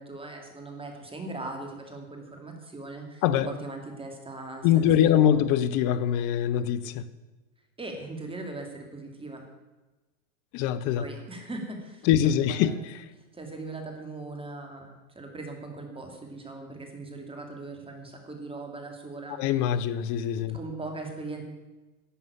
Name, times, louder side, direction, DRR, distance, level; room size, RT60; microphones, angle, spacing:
voice 1, 0.0-5.4 7.8-9.4 10.9-12.7 13.2-19.4 20.4-21.4, right 2 dB, 10° right, 2.5 m, -40 dB
voice 2, 4.6-7.0 10.5-11.1 12.1-12.8 19.4-20.6, left 10 dB, 45° left, 1.0 m, -23 dB
11.5 x 7.3 x 9.7 m
hypercardioid pair, 110°, 44 cm